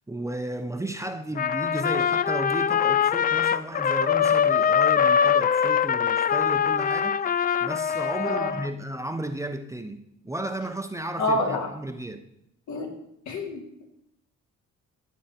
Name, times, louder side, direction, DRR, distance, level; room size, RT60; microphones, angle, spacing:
voice 1, 0.1-12.2, right 1 dB, 10° right, 0.8 m, -34 dB
Trumpet, 1.4-8.7, left 8 dB, 30° left, 0.4 m, -23 dB
voice 2, 8.2-8.5 11.2-11.7 12.7-12.9 13.3-13.6, left 2 dB, 70° left, 2.9 m, -27 dB
14.0 x 8.2 x 4.4 m
cardioid pair, 90°, 30 cm